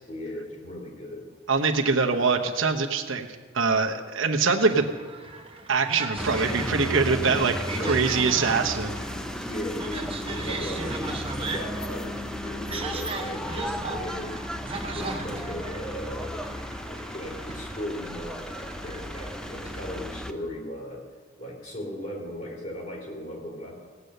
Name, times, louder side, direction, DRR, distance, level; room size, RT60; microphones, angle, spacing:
voice 1, 0.1-1.3 7.6-8.0 9.1-14.4 14.8-16.4 16.9-18.5 18.8-21.0 21.4-23.8, left 1 dB, 35° left, -1 dB, 3.4 m, -37 dB
voice 2, 1.5-3.3 3.5-4.9 5.7-7.5 7.8-8.9, right 4 dB, 70° right, 3 dB, 1.0 m, -23 dB
sound 1, 4.4-20.0, right 4 dB, 25° right, 1.0 m, -38 dB
sound 2, 6.2-20.3, equal, 5° left, 0.5 m, -34 dB
17.0 x 8.3 x 6.7 m, 1.5 s
head